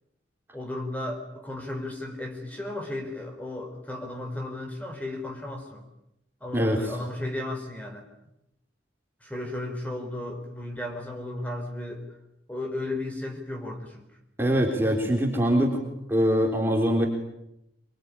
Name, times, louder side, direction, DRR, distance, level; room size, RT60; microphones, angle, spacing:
voice 1, 0.5-5.8 6.4-8.1 9.2-12.0 12.5-14.0, left 1 dB, 10° left, 3 dB, 4.3 m, -34 dB
voice 2, 6.5-7.0 14.4-15.8 16.1-17.1, equal, 10° right, 0 dB, 3.7 m, -23 dB
24.5 x 24.0 x 9.9 m, 0.84 s
head